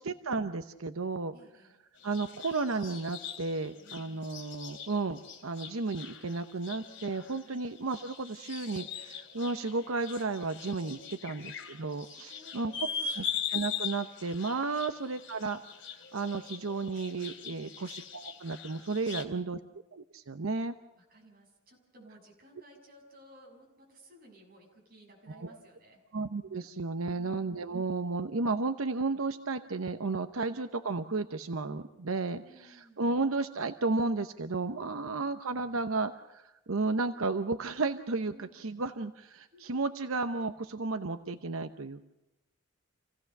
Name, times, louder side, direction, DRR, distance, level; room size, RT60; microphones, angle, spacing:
voice 1, 0.0-1.3 2.0-11.5 11.8-12.7 13.2-15.6 15.9-19.6 19.9-20.7 25.4-25.5 26.1-42.0, right 3 dB, 90° right, 9 dB, 0.9 m, -33 dB
voice 2, 1.3-1.8 7.4-7.7 10.9-13.1 17.4-17.8 21.0-26.0 32.4-33.0 34.8-35.3 38.2-38.7 39.5-39.8, equal, 45° right, 0 dB, 6.6 m, -57 dB
sound 1, 2.0-19.3, left 7 dB, 60° left, 3.1 m, -41 dB
27.5 x 16.5 x 6.6 m, 0.92 s
head